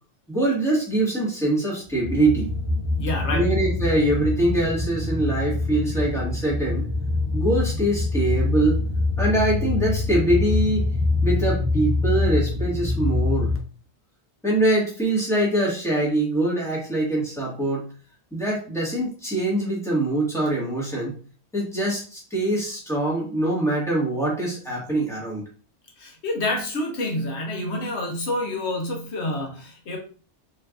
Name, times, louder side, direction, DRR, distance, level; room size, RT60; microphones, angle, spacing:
voice 1, 0.3-2.5 3.3-6.9 7.3-8.8 9.2-10.9 11.2-13.5 14.4-17.8 18.3-21.1 21.5-25.4, right 1 dB, 5° left, -5 dB, 1.7 m, -23 dB
sound 1, 1.9-13.6, left 3 dB, 20° right, 0.4 m, -25 dB
voice 2, 3.0-3.5 26.0-30.0, left 1 dB, 75° left, 1 dB, 1.2 m, -28 dB
4.6 x 3.2 x 2.5 m, 0.40 s
omnidirectional pair, 1.1 m